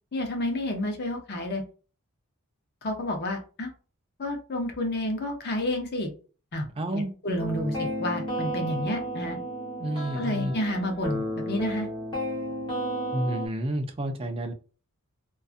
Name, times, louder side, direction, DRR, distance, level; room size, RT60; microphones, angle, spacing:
voice 1, 0.1-1.6 2.8-3.7 4.2-6.1 6.5-6.7 6.9-9.4 10.2-11.9, left 1 dB, 45° left, 3 dB, 0.6 m, -30 dB
voice 2, 6.8-7.1 9.8-10.6 13.1-14.5, right 1 dB, 25° right, 6 dB, 0.4 m, -30 dB
sound 1, 7.4-13.5, right 1 dB, 20° left, 1.0 m, -32 dB
2.5 x 2.3 x 2.4 m, 0.36 s
head